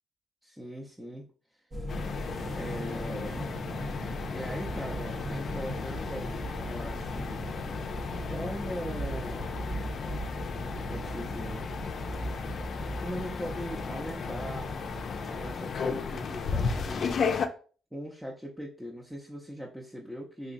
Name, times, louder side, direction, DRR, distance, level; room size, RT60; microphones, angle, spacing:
voice 1, 0.4-1.3 2.5-3.4 4.3-7.4 8.2-9.5 10.5-11.7 13.0-14.8 15.2-17.1 17.9-20.5, equal, 5° right, -3 dB, 0.6 m, -40 dB
sound 1, 1.7-15.6, right 1 dB, 35° right, 0.8 m, -39 dB
sound 2, 1.9-17.5, left 5 dB, 55° left, 0.4 m, -35 dB
3.7 x 2.9 x 2.6 m, 0.39 s
cardioid pair, 90°, 0 cm